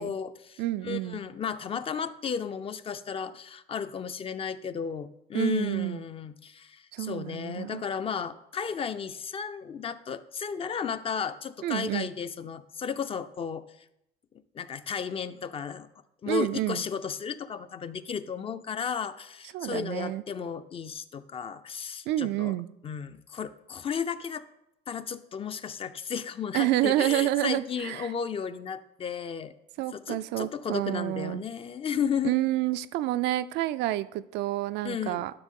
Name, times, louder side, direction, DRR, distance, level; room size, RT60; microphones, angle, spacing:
voice 1, 0.0-13.6 14.5-15.9 16.2-22.6 22.8-24.4 24.9-29.5 29.9-32.4 34.8-35.2, left 7 dB, 35° left, 12 dB, 0.5 m, -34 dB
voice 2, 0.6-1.2 5.3-6.0 6.9-7.8 11.6-12.1 16.3-16.8 19.5-20.2 22.1-22.7 26.5-28.1 29.8-31.4 32.2-35.3, right 15 dB, 85° right, 13 dB, 0.4 m, -29 dB
11.0 x 6.1 x 3.7 m, 0.83 s
cardioid pair, 110°, 17 cm